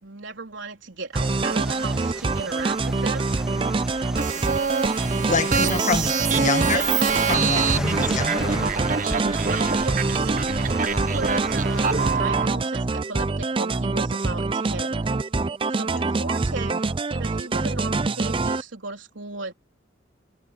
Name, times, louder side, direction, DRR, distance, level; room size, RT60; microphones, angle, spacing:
voice 1, 0.0-3.3 4.0-4.6 5.3-6.5 9.8-10.6 11.1-15.1 15.7-19.5, right 3 dB, 80° right, 3.7 m, -36 dB
sound 1, 1.1-12.2, equal, 5° right, 2.5 m, -37 dB
sound 2, 1.2-18.6, right 3 dB, 25° right, 0.5 m, -25 dB
sound 3, 4.2-12.5, right 5 dB, 45° right, 1.2 m, -26 dB
voice 2, 5.3-7.0 7.2-8.7, left 4 dB, 40° left, 1.6 m, -27 dB
head